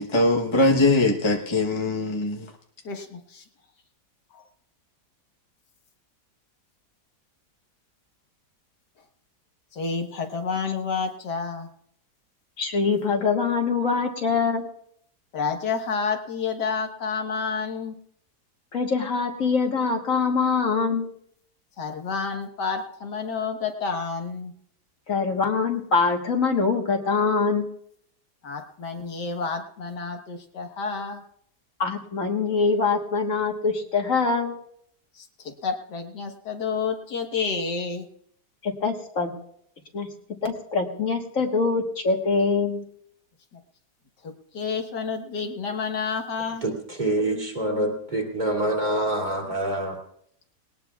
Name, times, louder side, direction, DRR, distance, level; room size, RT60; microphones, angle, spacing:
voice 1, 0.0-2.5, left 2 dB, 20° left, 0 dB, 0.8 m, -21 dB
voice 2, 2.8-3.4 4.3-4.4 9.7-11.7 15.3-18.0 21.8-24.5 28.4-31.2 35.1-38.1 43.5-43.6 44.2-46.6, left 5 dB, 80° left, 3 dB, 2.0 m, -30 dB
voice 3, 12.6-14.7 18.7-21.1 25.1-27.7 31.8-34.5 38.6-39.3 39.9-40.1 40.4-42.8, left 4 dB, 55° left, 2 dB, 1.7 m, -24 dB
voice 4, 46.6-50.0, right 1 dB, 25° right, 1 dB, 2.5 m, -26 dB
20.0 x 18.5 x 2.4 m, 0.67 s
omnidirectional pair, 1.8 m